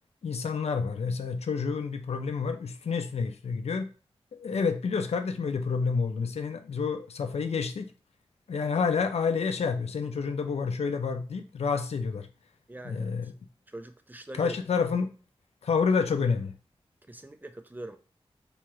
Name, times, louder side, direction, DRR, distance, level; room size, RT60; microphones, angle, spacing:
voice 1, 0.2-3.9 4.3-7.9 8.5-12.3 12.8-13.3 14.4-15.1 15.6-16.5, left 5 dB, 80° left, 0.4 m, -29 dB
voice 2, 12.7-13.3 13.7-14.6 17.1-18.0, right 1 dB, 15° right, 0.4 m, -43 dB
3.4 x 2.9 x 3.1 m
wide cardioid pair, 75°, 11 cm